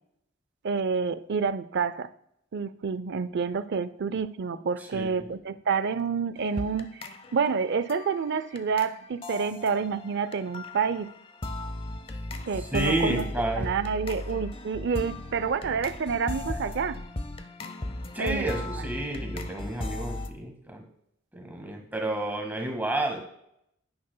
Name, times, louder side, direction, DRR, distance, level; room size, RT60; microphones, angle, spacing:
voice 1, 0.6-2.1 2.5-11.1 12.5-13.3 13.6-17.0 18.2-18.4, right 5 dB, 60° right, 14 dB, 0.5 m, -28 dB
voice 2, 4.9-5.3 12.7-13.7 18.1-20.8 21.3-23.2, right 1 dB, 10° right, 2 dB, 1.6 m, -30 dB
sound 1, 6.4-20.3, left 2 dB, 30° left, 0.6 m, -37 dB
11.0 x 9.6 x 2.2 m, 0.75 s
head